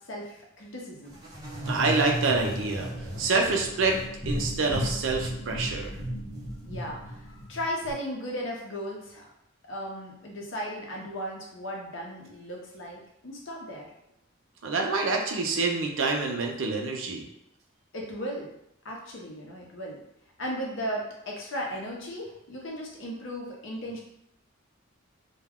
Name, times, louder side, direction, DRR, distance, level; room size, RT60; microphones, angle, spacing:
voice 1, 0.1-1.2 1.8-2.0 6.6-9.3 9.7-13.9 17.9-18.5 18.8-20.0 20.4-24.0, equal, 70° left, -1 dB, 0.7 m, -36 dB
sound 1, 1.1-7.9, equal, 20° right, 0.6 m, -35 dB
voice 2, 1.7-2.9 3.2-4.0 4.3-5.9 14.6-17.3, right 3 dB, 75° right, 2 dB, 0.5 m, -26 dB
2.2 x 2.2 x 3.5 m, 0.78 s
head